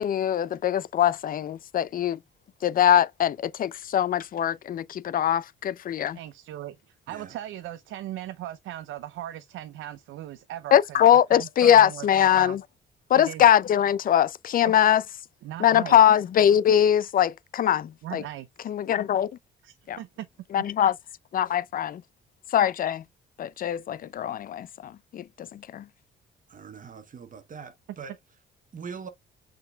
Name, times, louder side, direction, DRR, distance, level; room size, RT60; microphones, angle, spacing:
voice 1, 0.0-2.2 2.6-6.2 10.7-12.6 13.1-15.0 15.6-18.2 18.7-19.3 19.9-20.0 20.5-20.9 21.3-22.0 22.5-23.0 23.4-25.9, left 10 dB, 45° left, 0.4 m, -22 dB
voice 2, 6.1-11.0 11.3-12.6 13.1-13.4 14.6-14.7 15.4-16.0 18.0-18.5 19.6-20.3, right 13 dB, 80° right, 0.5 m, -38 dB
voice 3, 26.5-28.1 28.7-29.1, right 6 dB, 40° right, 0.8 m, -42 dB
5.7 x 3.7 x 2.3 m
cardioid pair, 90°, 20 cm